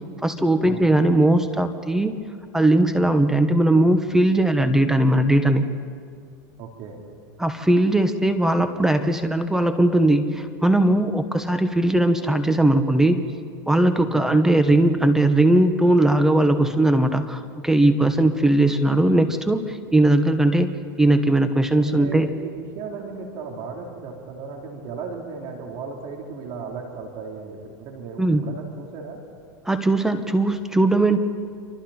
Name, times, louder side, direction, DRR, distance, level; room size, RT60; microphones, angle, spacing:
voice 1, 0.2-2.1 2.5-5.7 7.4-13.2 13.7-20.7 21.0-22.3 28.2-28.4 29.6-31.2, right 1 dB, 5° right, 8 dB, 1.2 m, -19 dB
voice 2, 6.6-7.0 14.0-14.3 19.3-19.4 22.0-29.2, right 5 dB, 55° right, 0 dB, 3.9 m, -36 dB
28.0 x 25.0 x 4.4 m, 2.2 s
supercardioid pair, 125°, 10 cm